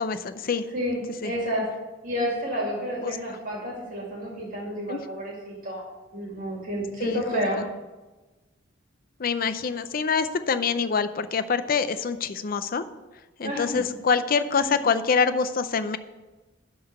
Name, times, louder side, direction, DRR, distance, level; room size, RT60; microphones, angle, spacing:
voice 1, 0.0-0.7 1.2-1.3 3.0-3.2 4.9-5.0 7.0-7.4 9.2-12.8 13.4-16.0, left 5 dB, 50° left, 12 dB, 0.5 m, -25 dB
voice 2, 0.7-1.7 2.0-5.9 6.1-7.6 13.4-13.7 14.5-14.8, equal, 45° right, -3 dB, 2.3 m, -30 dB
12.0 x 3.9 x 6.6 m, 1.2 s
head